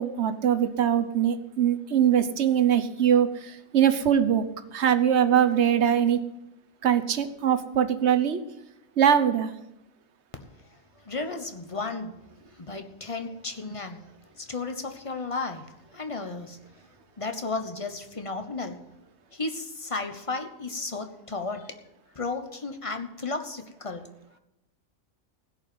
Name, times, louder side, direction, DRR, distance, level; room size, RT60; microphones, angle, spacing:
voice 1, 0.0-4.5 4.7-6.2 6.8-8.4 9.0-9.5, right 9 dB, 55° right, 10 dB, 1.1 m, -22 dB
voice 2, 10.4-14.0 14.3-16.7 17.2-18.8 19.3-21.7 22.1-24.1, left 3 dB, 25° left, 6 dB, 1.0 m, -34 dB
16.0 x 5.5 x 9.3 m, 0.88 s
omnidirectional pair, 1.4 m